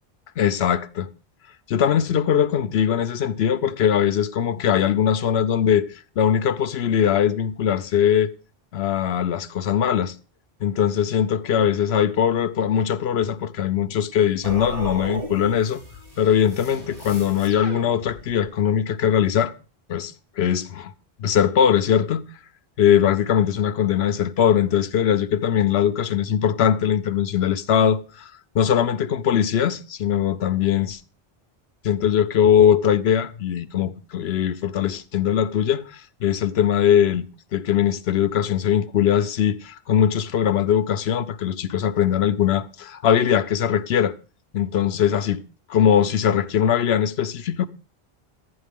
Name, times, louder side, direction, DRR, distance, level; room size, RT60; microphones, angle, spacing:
voice 1, 0.4-1.1 1.7-8.3 8.7-10.1 10.6-15.8 16.2-19.5 19.9-20.9 21.2-22.3 22.8-31.0 31.8-44.1 44.5-45.4 45.7-47.7, left 9 dB, 80° left, 0.9 m, -21 dB
sound 1, 14.4-18.5, right 1 dB, 60° right, 2.2 m, -36 dB
11.0 x 9.8 x 3.5 m
omnidirectional pair, 1.1 m